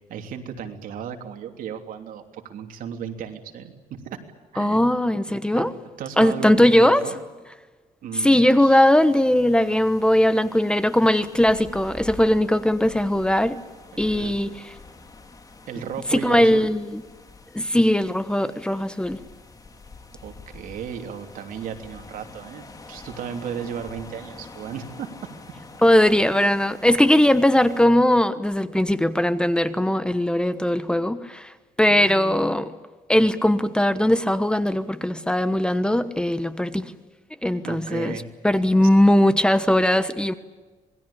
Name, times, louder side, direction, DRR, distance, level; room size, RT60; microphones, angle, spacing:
voice 1, 0.1-4.2 4.5-4.8 5.5-5.7 6.0-7.2 8.0-8.8 14.0-14.3 15.7-16.7 20.2-25.3 31.9-32.5 37.6-38.3 38.8-38.9, right 8 dB, 75° right, 3.2 m, -35 dB
voice 2, 4.6-5.7 6.2-7.0 8.2-13.6 14.0-14.6 16.1-17.0 17.5-19.2 25.8-31.5 31.8-32.7 33.1-36.9 37.4-40.3, left 1 dB, 5° left, 1.2 m, -19 dB
sound 1, 8.9-27.9, left 3 dB, 25° left, 3.5 m, -46 dB
27.0 x 21.0 x 8.6 m
cardioid pair, 120°, 14 cm